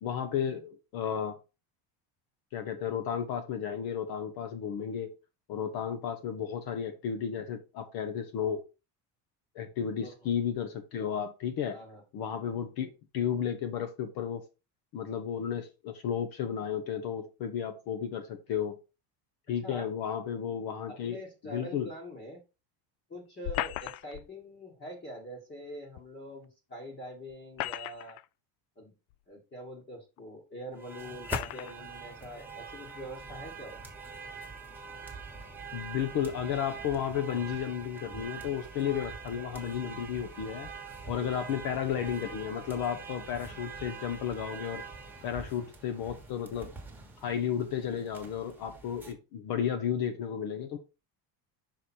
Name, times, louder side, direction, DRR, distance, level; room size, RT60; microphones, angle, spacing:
voice 1, 0.0-1.4 2.5-5.1 5.5-8.6 9.5-11.8 12.1-14.4 14.9-18.8 19.5-21.2 21.4-21.9 35.7-40.7 41.1-44.8 45.2-46.7 47.2-50.8, left 8 dB, 50° left, 0.9 m, -33 dB
voice 2, 11.7-12.0 19.6-19.9 20.9-22.4 23.1-28.2 28.8-28.9 29.3-33.9 41.2-41.4, equal, 20° left, 1.4 m, -44 dB
sound 1, 23.4-24.3 26.0-26.1 27.3-28.2 29.1-29.2 30.2-30.3 31.2-31.7, left 15 dB, 75° left, 0.5 m, -35 dB
sound 2, 30.8-49.1, right 4 dB, 5° right, 1.4 m, -44 dB
5.8 x 4.8 x 4.3 m
cardioid pair, 160°, 48 cm